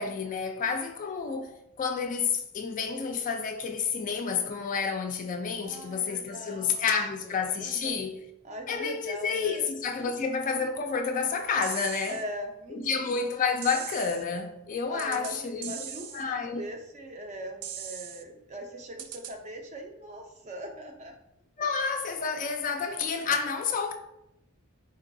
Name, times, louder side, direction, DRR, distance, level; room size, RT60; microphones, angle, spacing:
voice 1, 0.0-1.5 1.8-8.2 8.7-12.2 12.7-15.7 16.1-16.6 21.6-23.9, left 5 dB, 35° left, 0.3 m, -30 dB
voice 2, 5.6-6.9 7.2-7.3 7.6-8.1 8.4-9.7 10.0-10.2 12.1-13.1 14.9-21.1 21.6-21.7, right 1 dB, 30° right, 0.5 m, -41 dB
sound 1, 11.6-12.2 13.6-14.2 15.0-15.3 15.6-16.2 17.6-18.2 19.0-19.3, right 9 dB, 90° right, 0.4 m, -39 dB
3.9 x 3.7 x 2.6 m
head